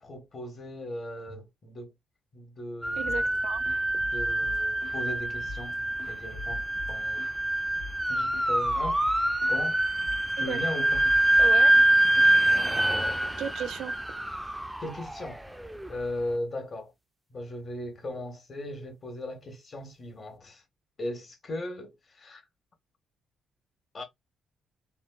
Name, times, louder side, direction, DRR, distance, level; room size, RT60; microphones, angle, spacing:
voice 1, 0.0-1.9 2.3-3.4 4.1-5.8 6.1-7.2 8.1-9.0 9.5-9.8 10.4-11.2 12.9-13.2 14.8-15.4 15.9-16.9 17.3-20.6 21.0-22.4 23.9-24.0, left 1 dB, 40° left, 1.3 m, -38 dB
sound 1, 2.8-15.9, right 1 dB, 5° right, 0.3 m, -25 dB
sound 2, 3.0-3.4 3.6-5.1 5.4-7.4 7.8-8.1 8.3-9.7 10.0-10.3 10.6-12.7, left 3 dB, 75° left, 1.2 m, -43 dB
voice 2, 3.0-3.7 10.4-10.7 11.4-11.7 13.4-13.9, right 8 dB, 80° right, 0.4 m, -35 dB
3.2 x 2.3 x 2.3 m
cardioid pair, 90°, 0 cm